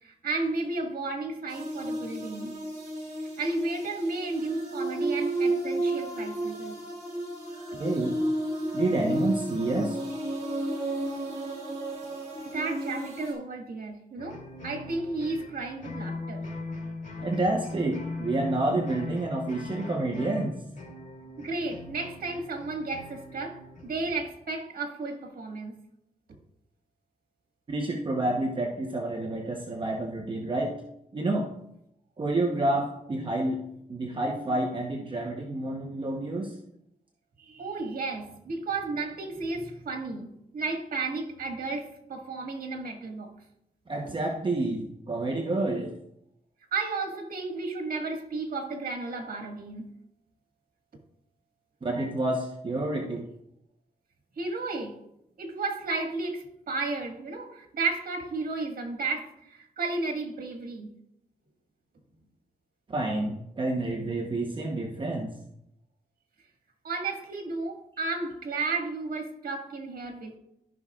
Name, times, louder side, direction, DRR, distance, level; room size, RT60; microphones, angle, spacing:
voice 1, 0.0-2.5 3.4-6.8 12.4-16.5 21.4-25.8 37.4-43.3 46.7-49.9 54.4-55.0 55.4-60.9 66.8-70.4, right 3 dB, 75° right, 2 dB, 1.8 m, -33 dB
sound 1, 1.5-13.3, right 1 dB, 50° right, 3.5 m, -32 dB
voice 2, 7.8-8.2 8.7-10.0 17.2-20.6 27.7-30.8 31.1-31.5 32.2-33.6 33.9-36.6 43.9-45.9 51.8-53.3 62.9-65.3, right 2 dB, 35° right, 0 dB, 0.9 m, -29 dB
sound 2, 14.2-24.3, left 3 dB, 60° left, 3.0 m, -40 dB
14.5 x 5.8 x 2.4 m, 0.78 s
wide cardioid pair, 125°, 15 cm